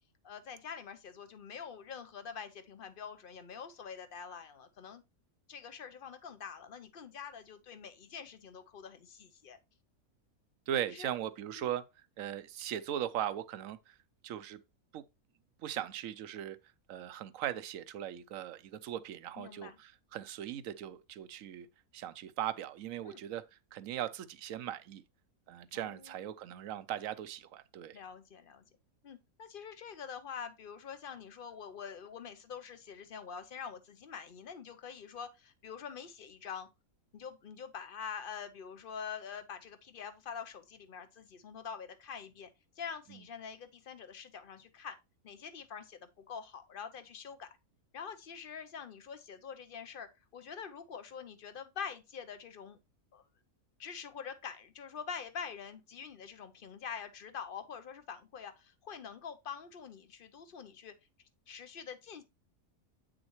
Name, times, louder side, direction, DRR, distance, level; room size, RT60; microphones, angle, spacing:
voice 1, 0.2-5.0 5.5-9.6 10.9-11.1 11.6-11.7 19.4-19.8 23.1-23.2 25.7-26.2 27.9-28.7 29.0-36.7 37.1-42.5 42.8-45.0 45.2-47.5 47.9-52.8 53.1-53.2 53.8-60.9 61.5-62.2, left 7 dB, 50° left, 0.7 m, -45 dB
voice 2, 10.7-11.9 12.2-14.0 14.2-14.6 14.9-15.0 15.6-16.6 16.9-21.7 21.9-25.0 25.5-28.0 43.1-43.2, right 11 dB, 70° right, 1.0 m, -39 dB
8.5 x 6.3 x 3.0 m
omnidirectional pair, 1.5 m